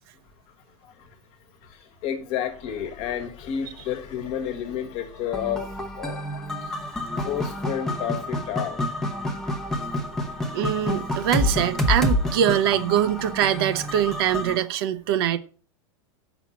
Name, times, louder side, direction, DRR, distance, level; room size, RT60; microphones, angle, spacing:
voice 1, 0.7-9.7, left 9 dB, 35° left, 1.4 m, -32 dB
sound 1, 5.3-14.6, left 1 dB, 5° left, 0.9 m, -28 dB
voice 2, 10.5-15.4, right 10 dB, 50° right, 0.8 m, -23 dB
7.9 x 6.2 x 7.1 m
supercardioid pair, 170°, 16 cm